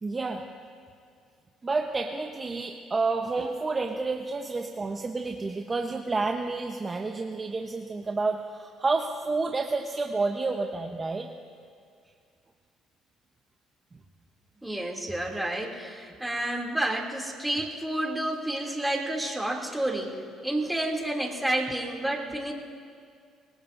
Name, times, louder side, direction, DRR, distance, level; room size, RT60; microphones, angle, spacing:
voice 1, 0.0-0.4 1.6-11.3, right 3 dB, 30° right, 3 dB, 1.0 m, -29 dB
voice 2, 14.6-22.5, right 1 dB, 5° right, -1 dB, 2.9 m, -30 dB
25.0 x 19.5 x 2.7 m, 2.1 s
supercardioid pair, 75°, 0 cm